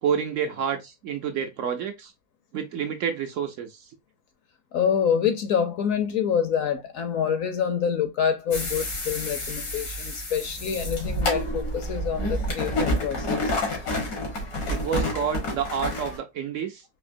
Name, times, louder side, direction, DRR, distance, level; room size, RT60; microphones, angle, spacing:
voice 1, 0.0-2.1 2.5-3.9 14.7-16.8, right 7 dB, 65° right, 0.8 m, -29 dB
voice 2, 4.7-13.6, left 7 dB, 65° left, 1.0 m, -26 dB
sound 1, 8.5-16.2, left 1 dB, 85° left, 2.0 m, -29 dB
4.3 x 2.7 x 2.6 m
omnidirectional pair, 1.6 m